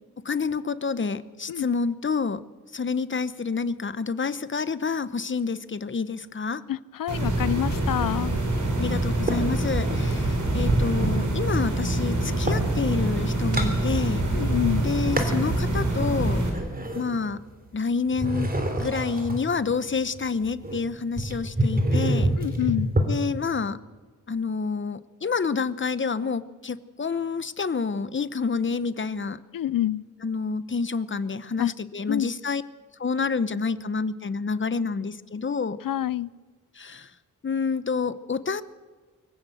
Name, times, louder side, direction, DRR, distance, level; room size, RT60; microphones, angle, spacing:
voice 1, 0.2-2.4 2.7-6.6 8.8-14.3 14.8-16.4 16.9-17.4 17.7-18.5 18.8-22.3 23.1-23.8 24.3-29.4 30.2-32.6 33.0-35.8 36.8-37.1 37.4-38.6, left 5 dB, 35° left, 15 dB, 0.9 m, -28 dB
voice 2, 6.7-8.3 14.3-14.9 22.4-22.9 29.5-30.0 31.6-31.7 32.1-32.3 35.8-36.3, left 12 dB, 85° left, 21 dB, 0.6 m, -27 dB
sound 1, 7.1-16.5, right 1 dB, 60° right, 5.2 m, -25 dB
sound 2, 9.3-10.2 10.7-12.7 13.2-14.4 14.7-15.5 16.0-17.7 18.1-23.1, right 1 dB, 25° right, 3.2 m, -28 dB
24.0 x 16.5 x 7.8 m, 1.4 s
wide cardioid pair, 140°, 33 cm